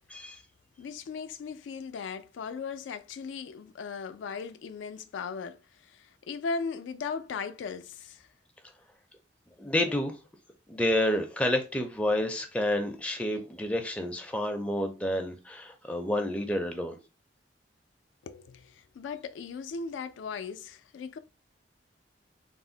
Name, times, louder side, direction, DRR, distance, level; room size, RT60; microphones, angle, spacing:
voice 1, 0.1-0.4 9.6-10.2 10.7-17.0, left 1 dB, 5° left, 0.4 m, -29 dB
voice 2, 0.8-8.3 18.2-21.2, left 5 dB, 85° left, 0.3 m, -38 dB
2.4 x 2.0 x 3.8 m
head